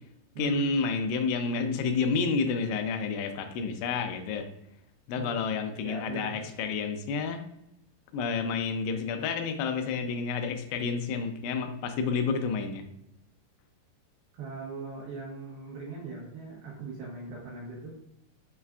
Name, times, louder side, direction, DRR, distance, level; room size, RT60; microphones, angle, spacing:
voice 1, 0.4-4.5 5.1-7.4 8.1-12.8, left 4 dB, 85° left, 6 dB, 2.8 m, -30 dB
voice 2, 5.1-6.4 14.3-18.0, right 4 dB, 75° right, -4 dB, 2.4 m, -40 dB
7.0 x 2.4 x 2.2 m, 0.81 s
omnidirectional pair, 5.3 m